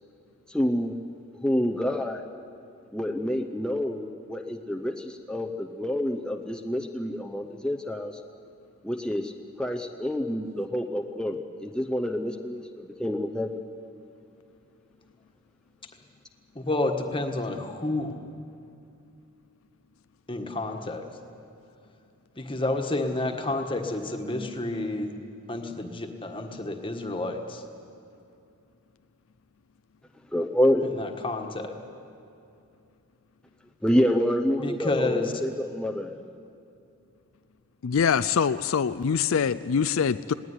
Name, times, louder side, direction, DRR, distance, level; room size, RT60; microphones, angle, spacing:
voice 1, 0.5-1.0 1.4-2.2 2.9-8.2 8.8-9.3 9.6-13.6 30.3-30.9 33.8-36.2, equal, 5° left, 2 dB, 0.7 m, -27 dB
voice 2, 16.5-18.2 20.3-21.0 22.4-25.1 25.5-27.6 30.8-31.7 34.6-35.3, left 2 dB, 25° left, 4 dB, 1.5 m, -30 dB
voice 3, 37.8-40.3, left 6 dB, 70° left, 13 dB, 0.4 m, -24 dB
20.0 x 17.5 x 9.7 m, 2.6 s
head